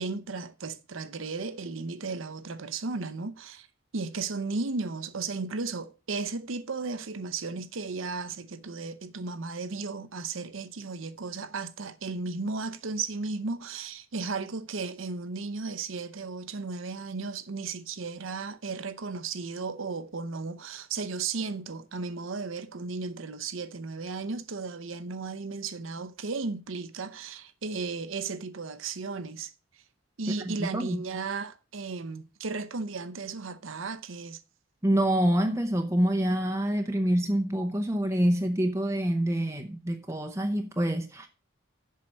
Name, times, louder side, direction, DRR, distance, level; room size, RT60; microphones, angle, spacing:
voice 1, 0.0-3.7 3.9-29.5 30.2-34.4, right 4 dB, 70° right, 0.8 m, -35 dB
voice 2, 30.4-31.0 34.8-41.3, right 1 dB, 15° right, 0.7 m, -26 dB
7.5 x 5.7 x 6.4 m
head